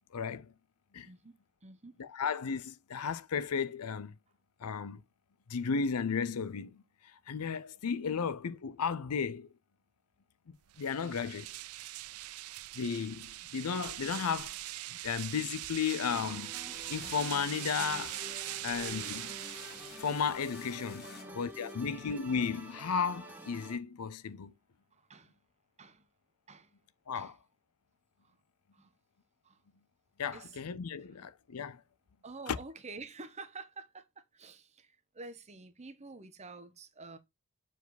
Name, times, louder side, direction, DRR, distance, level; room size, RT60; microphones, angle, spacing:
voice 1, 0.1-0.5 0.9-1.1 2.0-4.1 4.6-5.0 5.5-6.8 7.3-9.5 10.5-11.5 12.7-14.6 15.0-16.5 16.9-18.2 18.6-19.4 20.0-24.5 27.1-27.3 30.2-31.8, left 6 dB, 85° left, 0.6 m, -34 dB
voice 2, 1.1-1.4 1.6-2.0 8.1-8.2 18.5-18.7 21.0-21.9 24.9-25.4 25.8-26.0 26.5-26.7 27.1-27.4 28.2-28.4 28.7-28.9 29.4-29.6 30.3-30.6 32.2-37.2, right 3 dB, 30° right, 1.0 m, -49 dB
sound 1, 10.7-20.4, right 16 dB, 80° right, 0.4 m, -42 dB
sound 2, 16.1-23.8, equal, 10° right, 1.3 m, -49 dB
sound 3, 16.7-22.2, left 4 dB, 45° left, 1.9 m, -52 dB
7.0 x 4.7 x 4.0 m
head